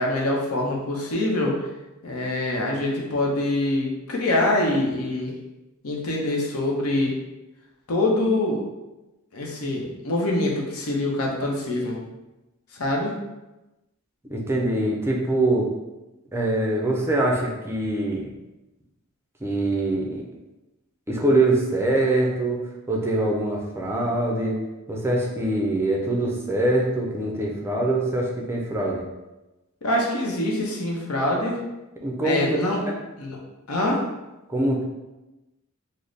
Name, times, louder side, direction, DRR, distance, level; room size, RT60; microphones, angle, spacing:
voice 1, 0.0-1.5 2.0-5.3 5.8-7.1 7.9-8.6 9.3-12.0 12.7-13.1 29.8-31.6 32.2-32.8 33.2-33.4 33.7-34.0, left 1 dB, 80° left, -1 dB, 0.8 m, -24 dB
voice 2, 14.3-15.7 16.3-18.3 19.4-20.2 21.1-22.6 22.9-24.6 24.9-29.0 32.0-32.4 32.8-32.9 34.5-34.8, right 1 dB, 10° right, -1 dB, 0.4 m, -23 dB
3.2 x 2.1 x 3.9 m, 1.0 s
head